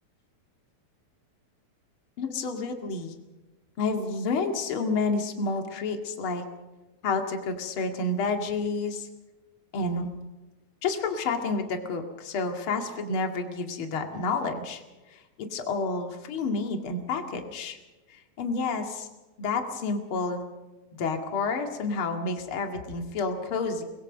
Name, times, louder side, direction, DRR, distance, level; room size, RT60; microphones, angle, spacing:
voice 1, 2.2-3.1 3.8-6.4 7.0-9.1 9.7-10.1 10.8-14.8 15.1-17.8 18.1-19.1 19.4-20.5 20.9-23.8, left 3 dB, 40° left, 4 dB, 2.6 m, -29 dB
24.0 x 21.5 x 5.4 m, 1.1 s
omnidirectional pair, 4.1 m